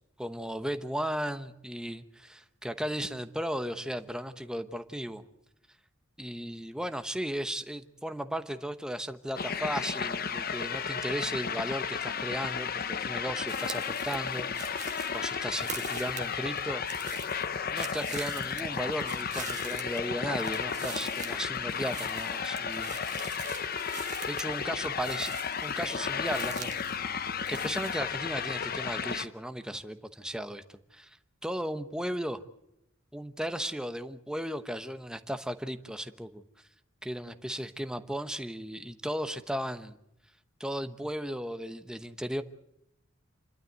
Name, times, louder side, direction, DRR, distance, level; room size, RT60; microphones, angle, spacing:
voice 1, 0.2-5.2 6.2-17.0 17.7-23.0 23.9-25.3 25.6-31.2 31.4-32.4 33.1-36.4 37.0-40.0 40.6-42.4, equal, 5° right, 9 dB, 1.0 m, -36 dB
sound 1, 9.4-29.3, left 6 dB, 45° left, 0.8 m, -33 dB
sound 2, 13.5-27.0 27.2-28.0, right 8 dB, 35° right, 1.6 m, -45 dB
28.0 x 12.0 x 9.4 m, 0.80 s
head